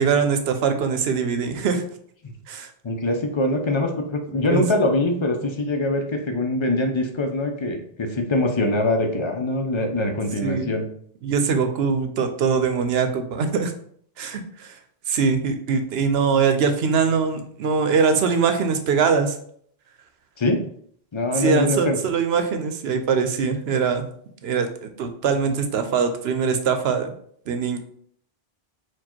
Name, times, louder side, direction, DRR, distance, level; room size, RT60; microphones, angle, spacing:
voice 1, 0.0-1.8 2.5-2.7 4.5-4.6 10.4-10.7 11.2-13.7 14.2-14.7 15.1-19.3 21.3-24.0 24.4-27.1 27.5-27.8, right 5 dB, 80° right, 8 dB, 0.9 m, -22 dB
voice 2, 2.8-10.9 20.4-20.6 21.1-22.0, left 2 dB, 35° left, 4 dB, 0.6 m, -23 dB
4.5 x 2.3 x 4.3 m, 0.62 s
omnidirectional pair, 1.0 m